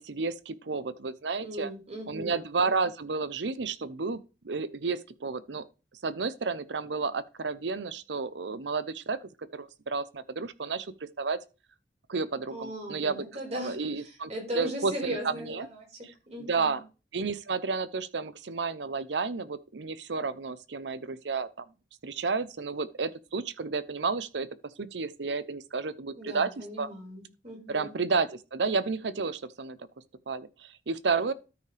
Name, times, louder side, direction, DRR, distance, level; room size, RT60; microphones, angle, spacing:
voice 1, 0.0-1.7 2.1-4.2 4.4-5.6 6.0-9.2 9.5-10.9 11.2-11.4 12.1-13.2 13.5-15.7 16.0-16.1 16.4-16.8 17.1-21.6 22.0-24.5 24.8-26.9 27.7-29.8 30.3-31.3, right 4 dB, 80° right, 0.7 m, -31 dB
voice 2, 1.4-2.3 12.5-16.1 16.3-16.8 26.2-28.0, equal, 40° right, 5.2 m, -38 dB
13.0 x 5.6 x 3.4 m
head